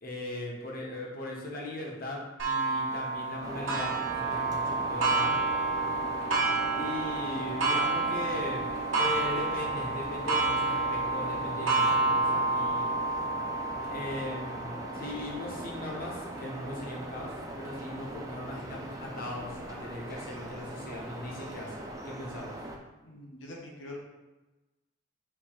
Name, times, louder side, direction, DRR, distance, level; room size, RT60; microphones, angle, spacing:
voice 1, 0.0-5.4 6.8-12.9 13.9-22.6, left 1 dB, 50° left, -2 dB, 0.8 m, -39 dB
Clock, 2.4-17.7 18.3-18.4 18.9-19.0 20.0-20.1, right 3 dB, 80° right, 1.0 m, -30 dB
sound 1, 3.4-22.8, right 1 dB, 20° right, 0.4 m, -41 dB
voice 2, 23.0-24.0, left 2 dB, 70° left, -1 dB, 1.0 m, -44 dB
4.5 x 2.7 x 4.2 m, 1.1 s
head